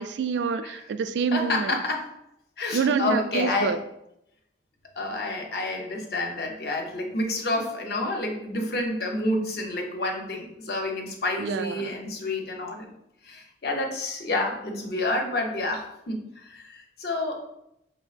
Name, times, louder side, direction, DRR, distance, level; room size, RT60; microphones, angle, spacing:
voice 1, 0.0-1.8 2.7-3.8 11.4-11.9, right 5 dB, 80° right, 10 dB, 0.3 m, -27 dB
voice 2, 1.3-2.1 2.6-3.8 5.0-12.9 13.2-17.4, left 2 dB, 60° left, 2 dB, 0.7 m, -29 dB
4.5 x 3.3 x 2.4 m, 0.81 s
head